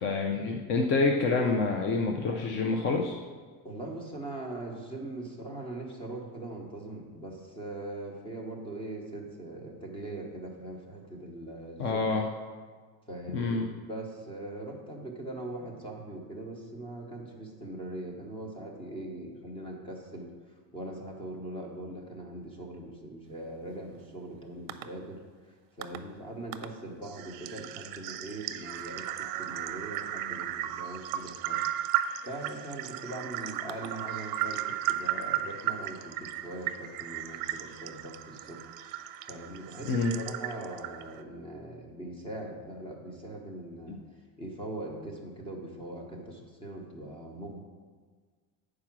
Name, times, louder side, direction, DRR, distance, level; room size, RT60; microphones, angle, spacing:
voice 1, 0.0-3.2 11.8-12.3 13.3-13.7 39.9-40.1 43.9-44.0, left 3 dB, 30° left, 2 dB, 0.4 m, -27 dB
voice 2, 3.6-12.2 13.1-20.3 20.7-25.2 25.8-31.6 32.2-38.6 39.2-44.0 44.4-47.6, right 1 dB, 15° left, 1 dB, 1.0 m, -41 dB
sound 1, 24.7-24.8 25.8-26.0 26.5-26.7 27.0-41.2, right 12 dB, 60° right, 0.6 m, -35 dB
8.6 x 4.9 x 6.0 m, 1.5 s
cardioid pair, 175°, 40 cm